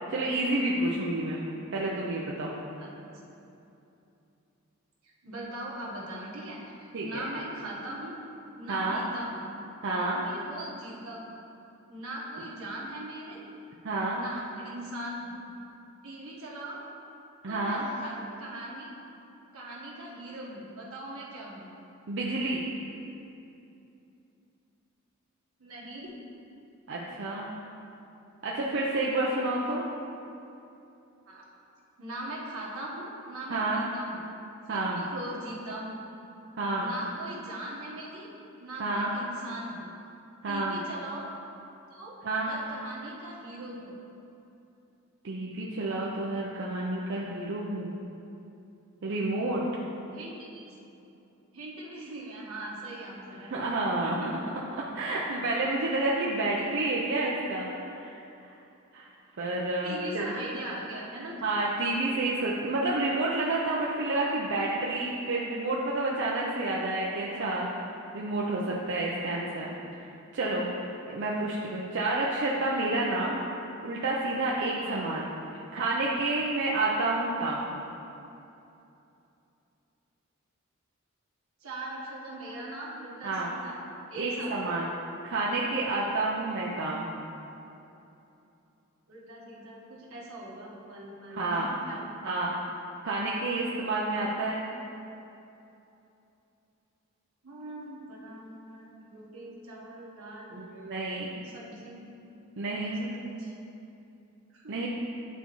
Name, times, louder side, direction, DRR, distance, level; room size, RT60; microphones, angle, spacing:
voice 1, 0.1-1.4 1.7-2.5 6.9-7.2 8.7-9.0 9.8-10.2 13.8-14.2 17.4-17.8 22.1-22.6 26.9-27.5 28.4-29.8 33.5-33.8 34.7-35.0 36.6-36.9 38.8-39.1 40.4-40.8 42.2-42.5 45.2-47.9 49.0-49.6 53.5-54.2 54.8-58.1 58.9-59.1 59.4-60.3 61.4-67.7 68.1-69.7 70.3-73.4 73.8-75.3 75.7-77.7 83.2-83.5 84.1-84.9 85.2-87.1 91.3-91.7 92.2-92.5 93.0-94.6 100.5-101.3 102.6-103.1 104.7-104.9, right 2 dB, 60° right, -4 dB, 0.6 m, -29 dB
voice 2, 5.2-8.1 8.5-9.5 10.2-11.2 11.9-13.4 14.1-15.4 16.0-16.8 17.5-18.9 19.5-21.7 25.6-26.1 31.3-31.4 32.0-34.2 34.7-34.8 35.1-36.0 36.7-38.3 38.6-39.9 40.5-41.3 41.9-42.2 42.4-44.0 50.1-50.7 51.5-53.5 54.0-54.4 59.8-61.4 74.8-75.0 75.5-75.6 75.9-76.0 81.6-83.8 84.1-84.5 89.1-92.0 97.4-100.5 101.4-102.3 102.8-103.5 104.5-104.8, right 1 dB, 85° right, -5 dB, 1.3 m, -40 dB
10.0 x 4.1 x 3.0 m, 2.8 s
head